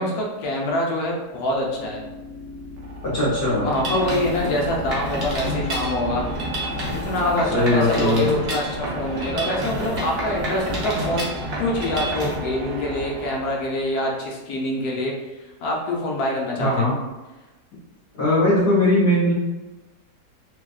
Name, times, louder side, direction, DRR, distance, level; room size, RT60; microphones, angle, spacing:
voice 1, 0.0-2.0 3.6-6.3 6.8-11.3 11.6-15.1 15.6-17.0, left 1 dB, 70° left, -2 dB, 1.1 m, -25 dB
sound 1, 1.2-14.3, left 1 dB, 85° right, 1.2 m, -34 dB
voice 2, 3.1-3.7 7.5-8.2 16.6-17.0 18.2-19.3, left 1 dB, 50° left, -10 dB, 1.1 m, -19 dB
Mechanisms, 3.7-12.4, right 1 dB, 50° right, 0.7 m, -29 dB
3.4 x 2.3 x 2.3 m, 1.1 s
omnidirectional pair, 1.8 m